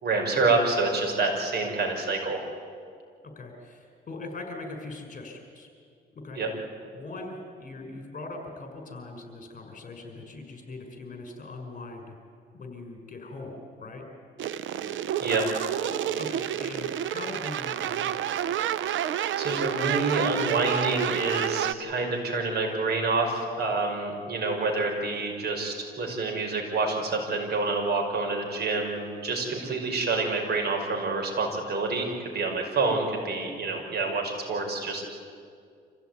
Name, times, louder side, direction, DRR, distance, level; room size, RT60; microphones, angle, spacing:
voice 1, 0.0-2.4 6.4-6.5 15.2-15.4 19.4-35.0, right 3 dB, 55° right, 1 dB, 5.6 m, -27 dB
voice 2, 3.4-5.7 6.2-6.4 6.9-12.2 12.5-14.0 16.2-18.4, left 2 dB, 40° left, 3 dB, 5.5 m, -41 dB
sound 1, 14.4-21.7, right 10 dB, 75° right, 0.8 m, -29 dB
26.0 x 16.0 x 9.4 m, 2.2 s
cardioid pair, 90°, 20 cm